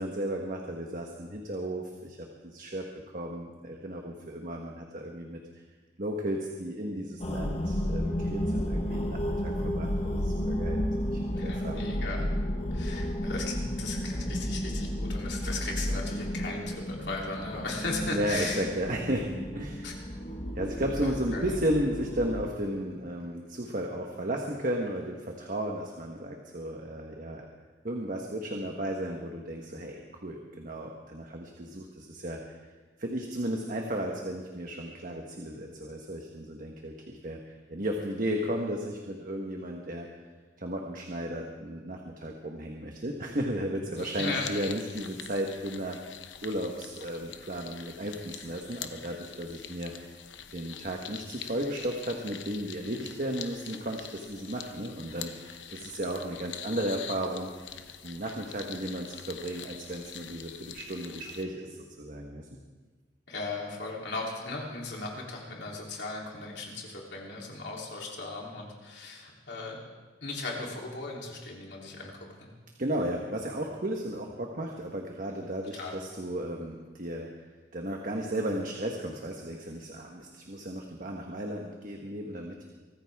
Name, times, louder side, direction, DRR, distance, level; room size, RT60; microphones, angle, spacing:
voice 1, 0.0-2.8 3.1-5.4 6.0-11.8 18.1-19.9 20.5-27.5 27.8-32.6 33.0-40.1 40.6-46.0 46.4-50.1 50.5-57.5 58.0-62.5 72.8-77.3 77.7-82.6, right 1 dB, 45° right, 1 dB, 1.3 m, -34 dB
sound 1, 7.2-22.4, equal, 35° left, 1.3 m, -32 dB
voice 2, 11.3-12.3 12.7-18.6 19.8-19.9 21.0-21.5 44.2-44.5 63.3-69.8 70.2-72.1 72.4-72.5 75.7-75.9, left 3 dB, 65° left, -2 dB, 3.3 m, -37 dB
sound 2, 44.0-61.4, left 9 dB, 80° left, 0.9 m, -44 dB
24.0 x 14.0 x 3.6 m, 1.3 s
head